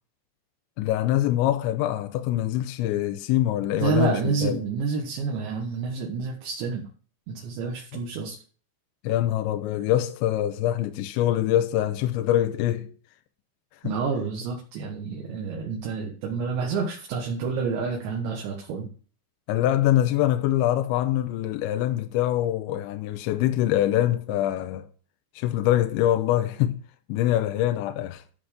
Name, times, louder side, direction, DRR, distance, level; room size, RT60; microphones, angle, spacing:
voice 1, 0.8-4.6 9.0-12.9 13.8-13.9 19.5-24.9 25.4-26.8 27.1-28.2, left 13 dB, 85° left, 2.8 m, -24 dB
voice 2, 3.8-6.9 7.3-8.4 13.8-18.9, right 5 dB, 70° right, 3.5 m, -29 dB
13.5 x 5.9 x 5.2 m
omnidirectional pair, 5.7 m